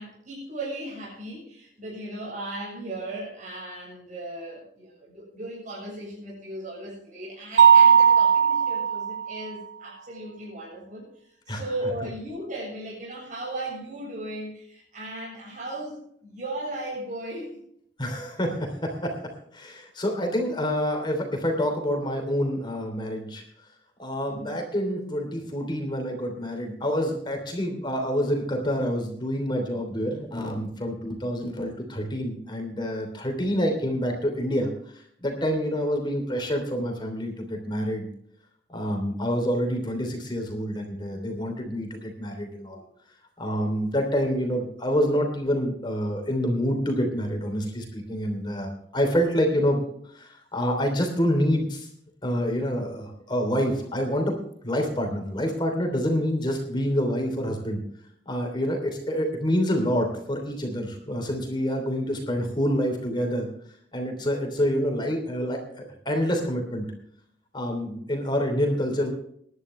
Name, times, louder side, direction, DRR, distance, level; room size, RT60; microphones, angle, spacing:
voice 1, 0.0-11.0 11.5-17.6 24.3-24.6, right 1 dB, 50° right, -3 dB, 7.6 m, -36 dB
Mallet percussion, 7.6-9.4, right 7 dB, 70° right, 0.9 m, -17 dB
voice 2, 18.0-19.2 19.5-23.4 24.0-38.1 38.7-42.8 43.4-49.8 50.1-51.9 52.2-54.4 54.6-57.8 58.3-63.5 63.9-66.9 67.5-69.1, equal, 25° left, 3 dB, 3.1 m, -27 dB
22.0 x 11.0 x 3.3 m, 0.67 s
head